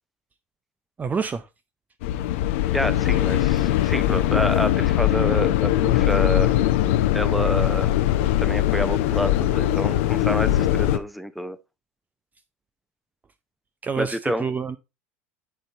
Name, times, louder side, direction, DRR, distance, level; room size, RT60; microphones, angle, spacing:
voice 1, 1.0-1.5 13.8-14.8, right 5 dB, 25° right, 0.6 m, -27 dB
sound 1, 2.0-11.0, left 13 dB, 75° left, 0.8 m, -21 dB
voice 2, 2.7-6.6 7.1-7.9 8.4-11.6 14.0-14.4, equal, ahead, 0.9 m, -28 dB
10.0 x 4.4 x 4.1 m
hypercardioid pair, 85°, 7 cm